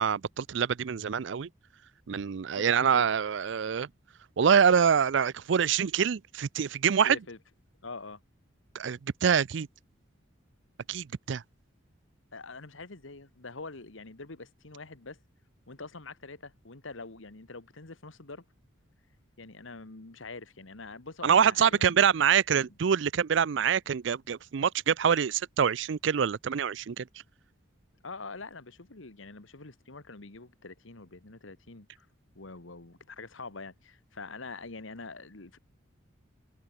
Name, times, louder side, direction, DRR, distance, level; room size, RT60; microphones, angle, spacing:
voice 1, 0.0-1.5 2.1-3.9 4.4-7.2 8.7-9.7 10.9-11.4 21.2-27.0, right 7 dB, 65° right, 0.4 m, -25 dB
voice 2, 2.5-3.1 7.0-7.4 7.8-8.2 12.3-15.2 15.7-18.4 19.4-22.0 28.0-32.1 32.3-35.6, left 3 dB, 75° left, 1.7 m, -44 dB
head